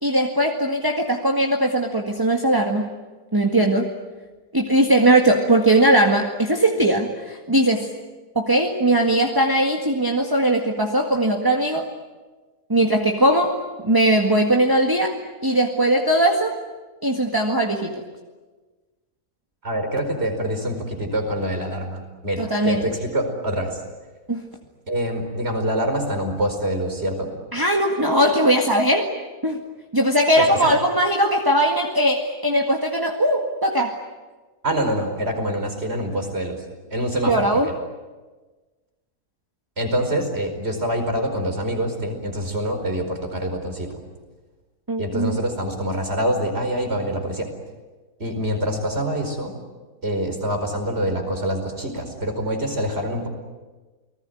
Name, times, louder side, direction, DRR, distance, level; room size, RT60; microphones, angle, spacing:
voice 1, 0.0-2.9 3.3-3.9 4.5-7.9 8.4-11.9 12.7-15.1 15.4-16.5 17.0-18.0 22.4-22.8 24.3-24.4 27.5-29.1 29.4-29.6 29.9-34.0 37.3-37.7 44.9-45.4, right 1 dB, 15° right, 2 dB, 1.8 m, -19 dB
voice 2, 19.6-23.8 24.9-27.3 30.4-30.7 34.6-36.6 36.9-37.8 39.8-44.0 45.0-47.5 48.2-49.6 50.0-53.3, equal, 40° right, 5 dB, 5.1 m, -25 dB
29.5 x 20.0 x 9.3 m, 1.3 s
omnidirectional pair, 1.6 m